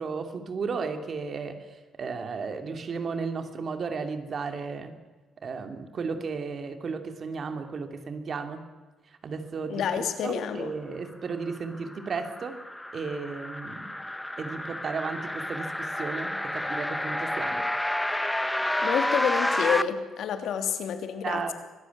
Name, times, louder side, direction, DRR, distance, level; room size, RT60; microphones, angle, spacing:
voice 1, 0.0-1.6 2.0-5.0 5.4-8.7 9.1-12.6 12.9-13.9 14.4-17.6 21.2-21.5, right 5 dB, 50° right, 7 dB, 2.8 m, -34 dB
voice 2, 9.7-10.7 18.8-21.5, left 8 dB, 75° left, 7 dB, 3.0 m, -29 dB
sound 1, 11.5-19.8, left 1 dB, 5° left, 1.2 m, -30 dB
24.0 x 17.0 x 9.7 m, 1.3 s
cardioid pair, 90°, 0 cm